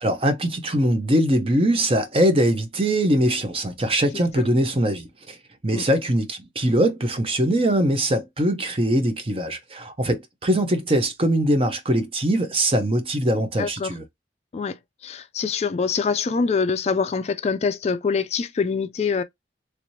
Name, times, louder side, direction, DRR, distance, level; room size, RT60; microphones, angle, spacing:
voice 1, 0.0-5.4 5.6-14.0, right 1 dB, 30° right, 0.7 m, -22 dB
voice 2, 13.6-13.9 14.5-19.2, left 5 dB, 35° left, 0.3 m, -25 dB
3.2 x 3.1 x 2.7 m
head